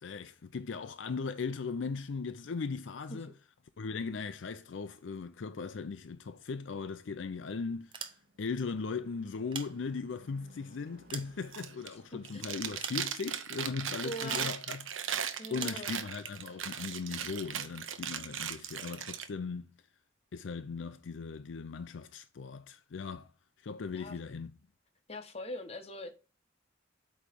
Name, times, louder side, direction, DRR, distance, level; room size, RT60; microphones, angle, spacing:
voice 1, 0.0-3.3 3.8-8.1 8.4-14.9 15.5-19.7 20.3-23.3 23.6-24.5, left 4 dB, 70° left, 0.5 m, -38 dB
sound 1, 7.8-8.6 9.3-10.3 10.8-12.0 12.8-13.4 14.3-14.6 15.6-15.9, right 6 dB, 25° right, 0.7 m, -43 dB
Car passing by / Truck / Engine, 7.8-16.0, equal, 50° right, 1.2 m, -63 dB
Chewing mastication, 11.4-11.9 12.2-19.3, right 8 dB, 85° right, 0.8 m, -38 dB
voice 2, 12.1-12.4 14.0-14.5 15.4-15.9 23.9-24.2 25.1-26.1, equal, 30° left, 1.1 m, -42 dB
8.4 x 3.2 x 5.1 m
head